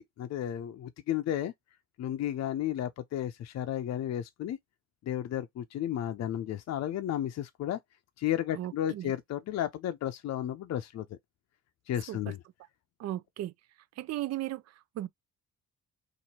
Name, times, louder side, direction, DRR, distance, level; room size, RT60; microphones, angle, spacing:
voice 1, 0.0-1.5 2.0-4.6 5.1-7.8 8.2-11.1 11.9-12.4, left 11 dB, 60° left, 0.6 m, -33 dB
voice 2, 8.5-9.1 12.1-12.2 13.0-13.5 14.0-15.1, right 14 dB, 60° right, 0.5 m, -36 dB
3.0 x 2.6 x 4.2 m
cardioid pair, 90°, 30 cm